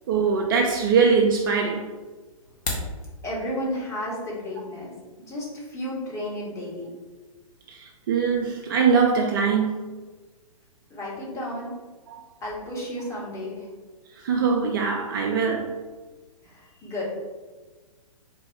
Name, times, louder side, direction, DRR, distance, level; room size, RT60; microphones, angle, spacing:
voice 1, 0.1-1.9 7.7-10.0 12.1-12.2 14.1-15.7, right 5 dB, 35° right, 1 dB, 0.4 m, -22 dB
sound 1, 2.4-3.0, left 3 dB, 40° left, 1.1 m, -30 dB
voice 2, 3.2-4.9 5.2-6.9 10.9-11.7 12.4-13.7 16.4-17.0, left 1 dB, 15° left, -5 dB, 1.2 m, -32 dB
4.1 x 2.9 x 3.5 m, 1.3 s
figure-of-eight pair, 120°, 19 cm